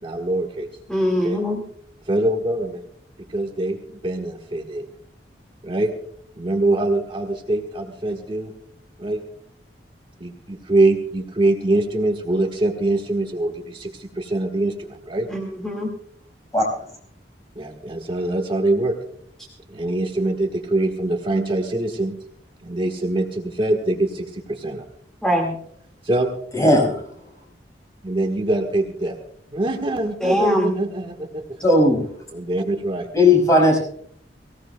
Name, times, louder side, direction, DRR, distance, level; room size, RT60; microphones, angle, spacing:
voice 1, 0.0-0.7 1.2-1.4 2.1-2.8 3.3-4.8 5.6-5.9 6.4-8.5 9.0-9.2 10.2-15.3 17.5-18.9 19.7-22.2 22.6-24.8 26.0-26.3 28.0-29.1 29.5-31.6 32.3-33.1, right 2 dB, 30° right, 3 dB, 1.5 m, -23 dB
voice 2, 0.9-1.6 15.3-15.9 21.3-21.4 25.2-25.5 30.2-30.8, equal, 5° left, 1 dB, 2.0 m, -22 dB
voice 3, 26.5-27.0 31.6-32.1 33.1-33.8, left 2 dB, 20° left, -1 dB, 5.4 m, -16 dB
24.0 x 17.0 x 2.3 m, 0.63 s
head